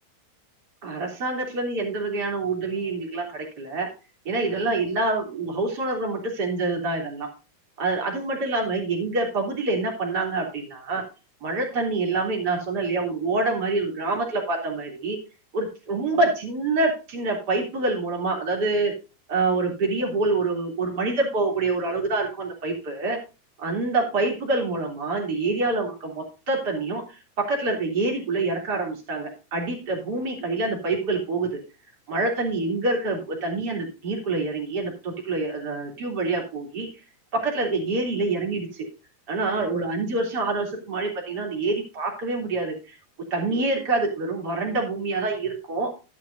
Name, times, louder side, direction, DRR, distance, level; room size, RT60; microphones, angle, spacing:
voice 1, 0.8-3.9 4.3-7.3 7.8-11.0 11.4-15.2 15.5-18.9 19.3-23.2 23.6-27.1 27.4-31.6 32.1-36.9 37.3-38.9 39.3-42.9 43.3-45.9, right 3 dB, 25° right, -1 dB, 3.4 m, -26 dB
12.5 x 11.0 x 2.7 m, 0.31 s
omnidirectional pair, 4.6 m